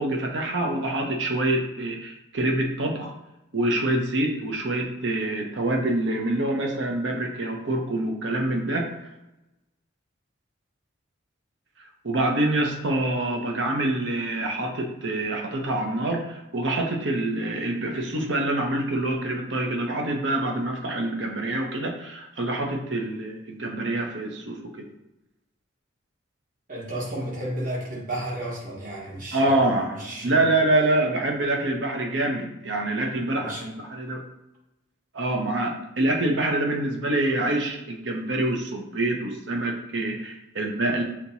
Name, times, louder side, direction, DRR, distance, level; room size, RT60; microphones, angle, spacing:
voice 1, 0.0-3.1 3.5-9.0 12.0-24.9 29.3-30.0 30.2-34.2 35.1-41.0, right 1 dB, 65° right, 1 dB, 0.8 m, -26 dB
voice 2, 26.7-30.5 33.4-33.6, right 1 dB, 40° right, -4 dB, 1.3 m, -33 dB
6.4 x 2.9 x 2.7 m, 0.92 s
head